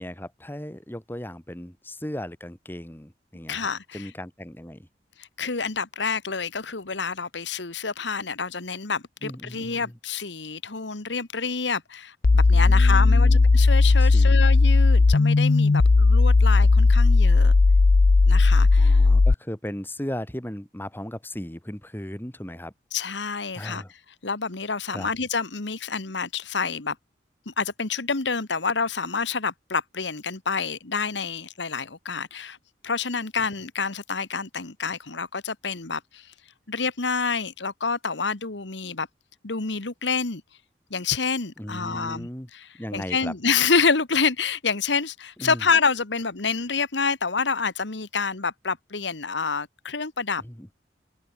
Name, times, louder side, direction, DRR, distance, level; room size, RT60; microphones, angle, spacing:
voice 1, 0.0-3.7 3.9-4.9 9.2-9.9 12.5-13.4 14.0-14.4 18.8-22.7 23.5-23.9 24.9-25.1 41.6-42.5 42.8-43.3 45.4-45.6 50.4-50.8, left 1 dB, 10° left, 1.7 m, -36 dB
voice 2, 3.5-4.1 5.2-17.5 18.3-19.0 22.9-23.8 24.2-26.9 27.4-32.6 32.8-36.3 36.7-39.1 39.4-40.4 40.9-50.4, left 5 dB, 80° left, 1.6 m, -28 dB
sound 1, 12.2-19.3, left 3 dB, 50° left, 0.5 m, -16 dB
open air
head